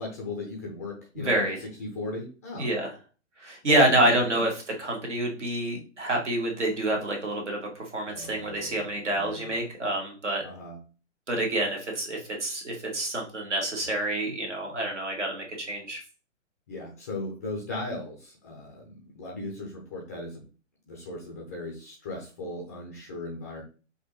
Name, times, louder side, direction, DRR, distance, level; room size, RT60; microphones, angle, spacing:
voice 1, 0.0-2.7 3.6-4.5 8.0-9.6 10.4-10.8 16.7-20.5 20.9-23.6, left 2 dB, 15° left, 0 dB, 0.4 m, -37 dB
voice 2, 1.2-1.6 2.6-2.9 3.4-10.4 11.3-16.0, right 1 dB, 65° right, 0 dB, 1.8 m, -27 dB
5.8 x 2.7 x 3.0 m, 0.36 s
figure-of-eight pair, 120°, 38 cm